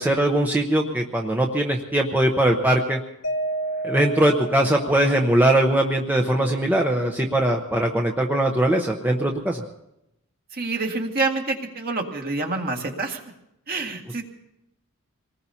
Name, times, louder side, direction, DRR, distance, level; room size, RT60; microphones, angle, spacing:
voice 1, 0.0-3.0 3.8-9.6, right 1 dB, 10° right, 1 dB, 0.9 m, -21 dB
Mallet percussion, 3.2-5.5, right 2 dB, 75° left, 1.8 m, -31 dB
voice 2, 10.5-13.2 13.7-14.2, right 3 dB, 45° right, 1 dB, 2.1 m, -27 dB
26.5 x 19.0 x 2.8 m, 0.84 s
head